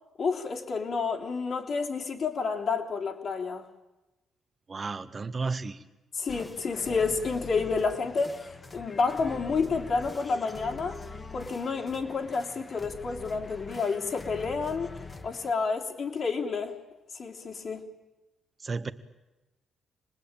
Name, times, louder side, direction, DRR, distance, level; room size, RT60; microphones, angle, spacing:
voice 1, 0.2-3.6 6.1-11.0 11.3-14.9 15.2-16.8 17.1-17.8, left 4 dB, 55° left, -1 dB, 3.3 m, -30 dB
voice 2, 4.7-5.8 18.6-18.9, right 4 dB, 35° right, 10 dB, 1.5 m, -33 dB
sound 1, 6.3-15.5, left 3 dB, 25° left, 1.5 m, -44 dB
27.5 x 20.0 x 9.0 m, 1.1 s
cardioid pair, 90°, 0 cm